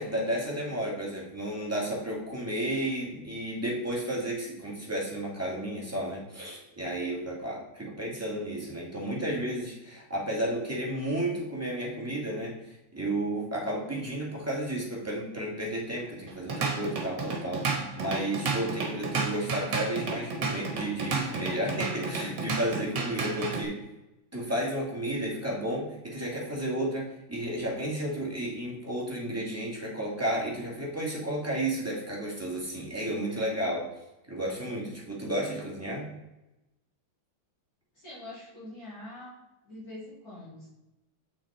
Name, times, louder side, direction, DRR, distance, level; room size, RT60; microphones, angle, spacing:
voice 1, 0.0-23.8 24.3-33.9 34.3-36.1, right 1 dB, 10° right, -4 dB, 2.0 m, -32 dB
Drum kit / Drum, 16.3-23.6, right 4 dB, 65° right, 1.9 m, -32 dB
voice 2, 37.9-39.4 39.6-40.7, left 1 dB, 50° left, -9 dB, 3.6 m, -44 dB
7.6 x 5.9 x 4.3 m, 0.96 s
omnidirectional pair, 2.1 m